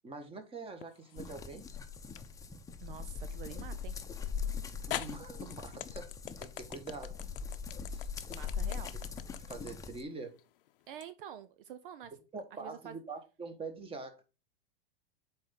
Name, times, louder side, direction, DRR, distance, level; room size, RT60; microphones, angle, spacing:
voice 1, 0.0-1.7 4.9-6.1 6.4-7.2 7.9-8.1 9.5-10.4 12.3-14.2, right 3 dB, 20° right, 1.6 m, -44 dB
sound 1, 0.8-1.4 2.2-2.3 4.1-4.2 4.9-11.1, left 13 dB, 65° left, 0.7 m, -43 dB
sound 2, 1.1-10.0, left 6 dB, 10° left, 0.8 m, -41 dB
voice 2, 2.8-4.0 8.3-9.0 10.9-12.1 12.6-13.0, right 10 dB, 65° right, 0.7 m, -47 dB
7.4 x 4.5 x 3.8 m
hypercardioid pair, 110°, 29 cm